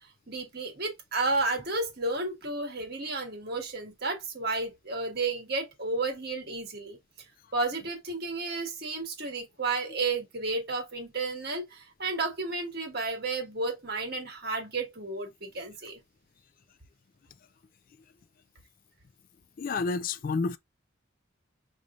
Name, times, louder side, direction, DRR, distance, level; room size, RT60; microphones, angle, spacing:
voice 1, 0.0-7.0 7.5-16.0, right 3 dB, 50° right, 1.6 m, -32 dB
voice 2, 19.6-20.6, left 4 dB, 40° left, 0.3 m, -29 dB
6.6 x 3.2 x 2.4 m
head